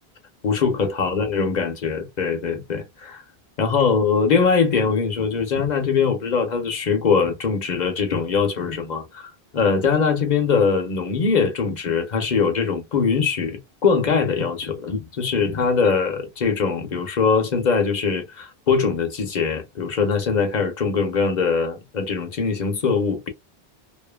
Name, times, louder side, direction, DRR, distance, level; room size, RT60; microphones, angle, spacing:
voice 1, 0.4-3.2 3.6-23.3, left 5 dB, 45° left, 0.9 m, -22 dB
2.6 x 2.5 x 2.2 m
omnidirectional pair, 1.0 m